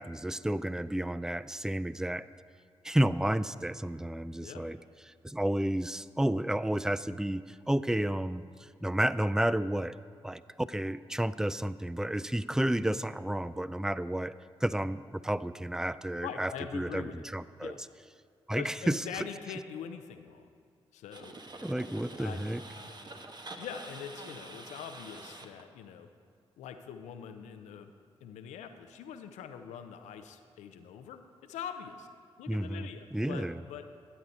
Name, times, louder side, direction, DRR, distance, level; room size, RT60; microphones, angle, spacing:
voice 1, 0.0-2.3 2.8-4.8 5.2-10.0 10.2-17.7 18.5-19.0 21.6-22.6 32.5-33.6, right 1 dB, 5° right, 16 dB, 0.4 m, -31 dB
voice 2, 16.2-17.3 17.6-17.8 18.5-20.5 20.9-21.3 22.2-23.0 23.6-26.1 26.6-27.9 28.2-32.1 32.4-33.9, left 8 dB, 85° left, 8 dB, 0.6 m, -43 dB
sound 1, 21.1-25.6 30.2-30.3, right 2 dB, 40° right, 1.2 m, -46 dB
14.0 x 8.4 x 4.1 m, 2.2 s
supercardioid pair, 40°, 12 cm